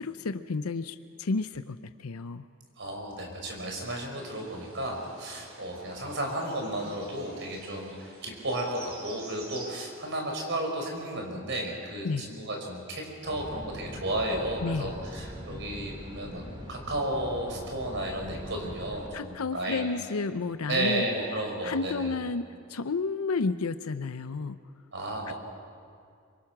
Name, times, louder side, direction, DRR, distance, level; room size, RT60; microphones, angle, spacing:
voice 1, 0.0-2.5 12.0-12.3 14.6-14.9 19.1-21.1 21.6-24.6 25.3-25.4, left 4 dB, 90° left, 10 dB, 0.6 m, -31 dB
voice 2, 2.8-16.4 16.7-19.9 20.7-22.1 24.9-25.3, right 1 dB, 55° right, 1 dB, 5.0 m, -33 dB
sound 1, 4.4-9.9, right 2 dB, 85° right, 5.2 m, -48 dB
sound 2, 13.2-19.1, equal, 25° right, 2.7 m, -42 dB
26.0 x 24.0 x 6.0 m, 2.3 s
head